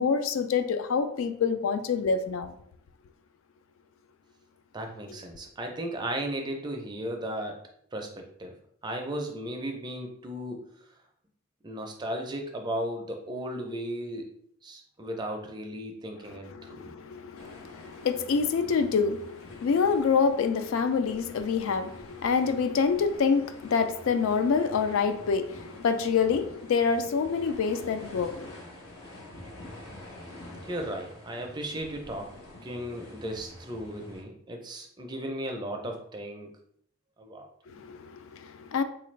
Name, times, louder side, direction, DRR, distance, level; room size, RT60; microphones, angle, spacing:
voice 1, 0.0-2.6 16.3-28.6 37.7-38.8, left 5 dB, 65° left, 0.3 m, -27 dB
voice 2, 4.7-8.6 8.8-10.9 11.6-14.3 14.6-16.9 30.6-32.3 32.6-36.5 37.2-37.5, right 1 dB, 20° right, 0.4 m, -36 dB
sound 1, 17.3-34.2, left 1 dB, 80° left, 0.9 m, -48 dB
3.7 x 2.5 x 3.1 m
head